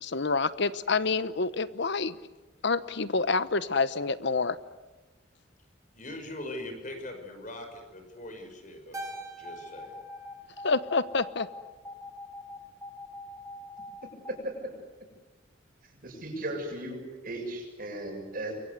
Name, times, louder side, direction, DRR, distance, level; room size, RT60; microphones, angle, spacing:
voice 1, 0.0-2.2 2.6-4.6 10.6-11.5, left 4 dB, 60° left, 15 dB, 1.0 m, -27 dB
voice 2, 5.9-9.9, left 1 dB, 40° left, 6 dB, 5.4 m, -41 dB
Keyboard (musical), 8.9-11.5, right 2 dB, 15° right, 2.6 m, -45 dB
sound 1, 9.0-14.3, left 1 dB, 20° left, 3.6 m, -43 dB
voice 3, 14.3-14.8 15.9-18.6, right 1 dB, 50° right, 2 dB, 7.1 m, -36 dB
28.5 x 23.5 x 8.2 m, 1.2 s
head